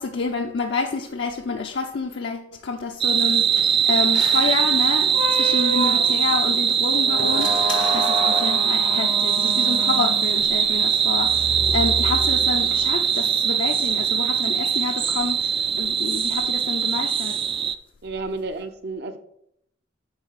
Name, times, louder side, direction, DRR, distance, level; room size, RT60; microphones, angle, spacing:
voice 1, 0.0-17.4, left 4 dB, 65° left, 0.5 m, -28 dB
sound 1, 3.0-17.8, right 8 dB, 30° right, 0.3 m, -21 dB
sound 2, 3.6-5.3 6.7-8.7, left 5 dB, 85° left, 0.9 m, -38 dB
sound 3, 5.1-12.9, right 1 dB, 90° right, 2.1 m, -29 dB
voice 2, 18.0-19.2, right 3 dB, 60° right, 0.7 m, -31 dB
8.8 x 3.3 x 5.6 m
head